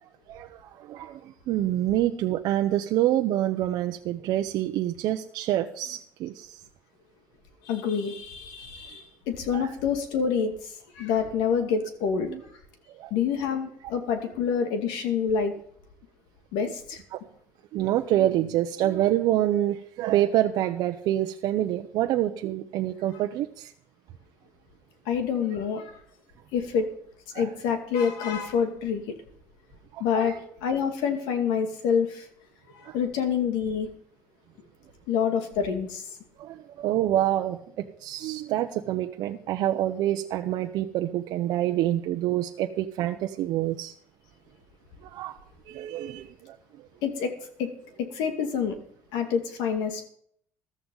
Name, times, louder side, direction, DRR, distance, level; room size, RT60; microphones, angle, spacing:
voice 1, 0.0-6.6 9.5-9.7 12.3-12.4 13.0-13.1 17.1-17.2 17.7-23.7 27.3-27.5 29.9-30.4 32.8-33.0 36.4-43.9 45.0-45.4 45.7-46.6, right 13 dB, 65° right, 4 dB, 0.8 m, -27 dB
voice 2, 7.6-10.7 11.0-12.3 13.1-15.5 16.5-17.0 25.1-25.9 26.5-26.9 27.4-29.0 30.0-30.3 30.6-32.3 32.9-33.9 35.1-36.0 47.0-47.3 47.6-47.7 48.1-48.8 49.1-50.0, left 7 dB, 85° left, 5 dB, 2.4 m, -27 dB
14.5 x 13.0 x 4.0 m, 0.65 s
cardioid pair, 120°, 7 cm